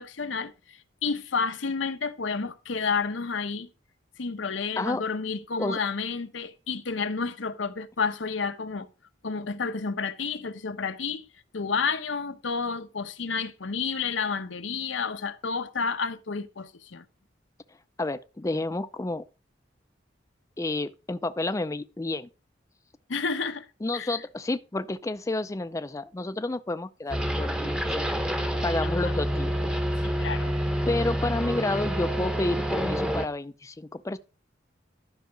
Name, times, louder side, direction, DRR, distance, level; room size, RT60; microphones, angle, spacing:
voice 1, 0.0-3.7 4.2-8.9 9.2-11.2 11.5-17.0 23.1-23.7 23.9-24.2 28.8-29.1 30.0-30.5, left 5 dB, 90° left, 0.9 m, -30 dB
voice 2, 18.0-19.2 20.6-22.3 23.8-27.8 28.6-29.5 30.8-34.2, left 2 dB, 15° left, 0.4 m, -30 dB
sound 1, 27.1-33.3, equal, 5° right, 0.8 m, -28 dB
12.0 x 5.6 x 5.0 m
head